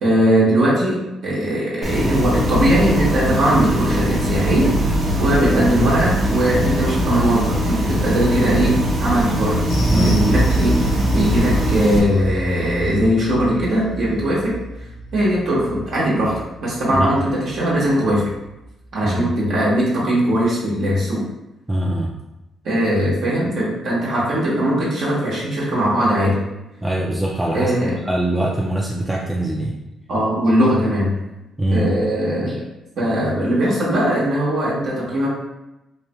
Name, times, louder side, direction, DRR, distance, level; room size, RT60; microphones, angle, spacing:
voice 1, 0.0-4.7 5.2-9.6 9.9-14.6 15.1-18.3 18.9-21.2 22.6-26.4 27.5-28.0 30.1-31.1 31.7-32.6 33.0-35.3, right 1 dB, 70° right, -7 dB, 1.0 m, -19 dB
sound 1, 1.8-12.0, equal, 45° right, 0.7 m, -21 dB
sound 2, 9.7-18.4 18.6-18.9 19.2-19.3, right 1 dB, 85° left, 0.9 m, -27 dB
voice 2, 9.9-10.2 16.9-17.1 19.0-19.3 21.7-22.1 26.8-27.7 28.1-29.8 31.6-31.9, right 1 dB, 5° right, -3 dB, 0.4 m, -22 dB
3.2 x 2.2 x 2.9 m, 0.96 s
cardioid pair, 90°, 0 cm